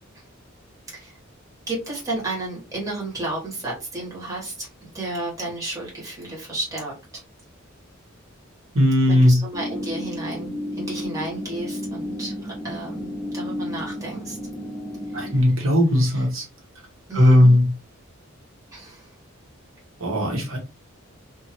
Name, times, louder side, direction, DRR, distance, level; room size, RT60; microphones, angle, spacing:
voice 1, 1.7-6.9 9.1-14.4 15.1-15.5 16.0-16.3 17.1-17.5 18.7-19.1, right 2 dB, 15° right, -4 dB, 1.3 m, -32 dB
voice 2, 8.7-9.4 15.1-16.4 17.1-17.7 20.0-20.6, left 1 dB, 70° right, 0 dB, 1.1 m, -17 dB
sound 1, 9.5-15.4, left 1 dB, 15° left, 0.8 m, -32 dB
2.6 x 2.4 x 2.9 m, 0.29 s
head